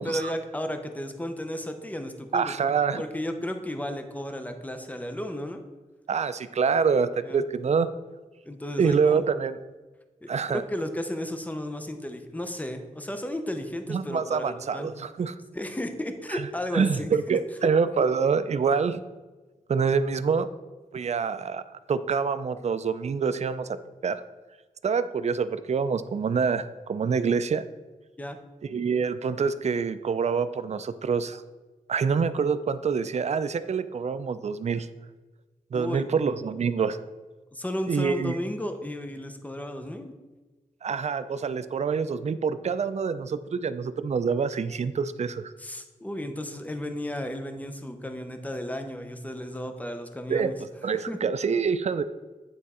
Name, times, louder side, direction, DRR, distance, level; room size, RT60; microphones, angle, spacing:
voice 1, 0.0-2.5 3.0-5.6 7.2-7.4 8.5-9.2 10.2-14.9 15.5-17.4 28.2-28.4 35.7-36.0 37.5-40.1 45.6-50.6 51.1-51.2, left 1 dB, 10° left, 6 dB, 0.6 m, -34 dB
voice 2, 2.3-3.0 6.1-7.9 8.8-9.5 10.3-10.6 13.9-15.3 16.3-16.5 16.7-19.0 19.7-20.5 20.9-21.6 21.9-23.8 24.0-24.2 24.8-27.6 28.6-31.4 31.9-34.9 35.7-37.0 37.9-38.4 40.8-45.5 50.3-50.5 50.8-52.0, right 5 dB, 50° right, 13 dB, 0.4 m, -26 dB
9.0 x 3.6 x 4.2 m, 1.2 s
wide cardioid pair, 110°, 15 cm